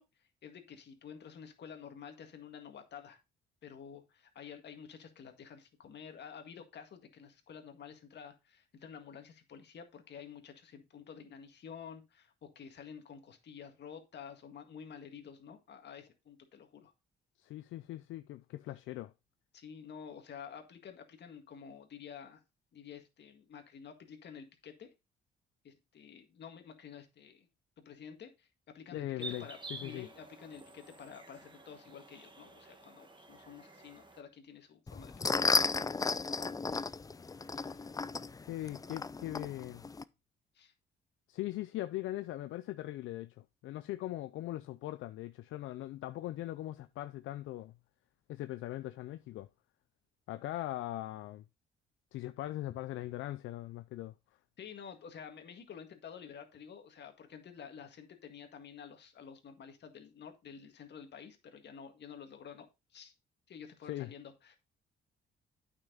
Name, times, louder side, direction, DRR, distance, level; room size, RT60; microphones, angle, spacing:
voice 1, 0.0-3.2 3.6-16.9 19.5-22.4 22.7-24.9 25.6-27.5 27.9-35.4 40.5-40.7 54.6-63.1 63.5-64.6, left 7 dB, 60° left, 1.8 m, -50 dB
voice 2, 17.4-19.1 28.9-30.1 37.3-38.0 38.5-39.8 41.3-47.7 48.3-49.5 50.3-51.4 52.1-54.1 63.8-64.1, left 15 dB, 80° left, 0.5 m, -40 dB
sound 1, 29.2-34.2, right 3 dB, 25° right, 1.4 m, -50 dB
sound 2, 34.9-40.0, left 4 dB, 20° left, 0.4 m, -34 dB
8.9 x 6.0 x 3.9 m
cardioid pair, 90°, 20 cm